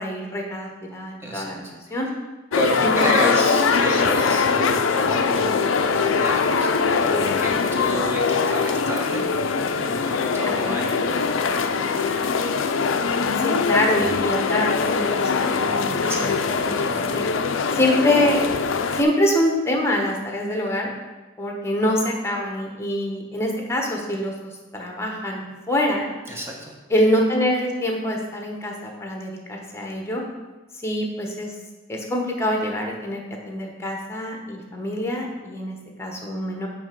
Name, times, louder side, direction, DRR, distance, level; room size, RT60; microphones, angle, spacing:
voice 1, 0.0-1.6 1.9-2.1 2.8-3.3 10.4-10.9 13.4-17.3 17.7-18.4 19.0-20.9 21.4-26.1 26.9-30.2 30.8-31.5 31.9-36.7, left 1 dB, 15° left, 0 dB, 1.2 m, -25 dB
voice 2, 1.2-1.7 2.5-12.2 16.0-17.2 26.3-26.7, equal, 15° right, 0 dB, 1.1 m, -31 dB
sound 1, 2.5-19.0, left 5 dB, 80° left, 0.5 m, -22 dB
8.8 x 3.5 x 5.2 m, 1.2 s
head